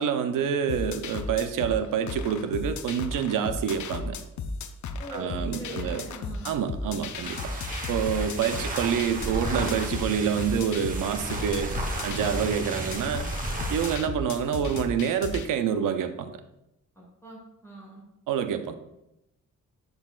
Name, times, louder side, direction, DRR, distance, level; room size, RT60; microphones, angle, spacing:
voice 1, 0.0-4.2 5.1-6.0 6.4-7.5 7.9-11.7 12.0-13.2 13.7-16.3 18.3-18.7, right 8 dB, 85° right, 9 dB, 0.6 m, -27 dB
sound 1, 0.7-15.5, left 4 dB, 65° left, 0.6 m, -35 dB
voice 2, 5.0-6.5 8.4-8.7 17.0-18.0, equal, 10° left, -5 dB, 2.3 m, -42 dB
sound 2, 7.1-14.0, right 1 dB, 25° right, 1.0 m, -33 dB
11.5 x 4.0 x 2.4 m, 0.87 s
cardioid pair, 125°, 31 cm